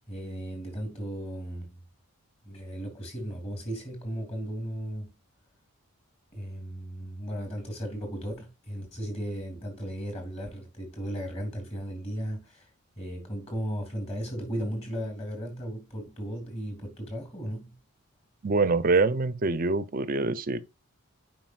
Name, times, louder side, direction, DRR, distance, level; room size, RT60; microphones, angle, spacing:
voice 1, 0.1-1.8 2.4-5.1 6.3-12.7 13.0-17.7, equal, 30° left, 2.8 m, -36 dB
voice 2, 18.4-20.6, right 3 dB, 40° right, 0.6 m, -25 dB
9.2 x 4.9 x 2.4 m
head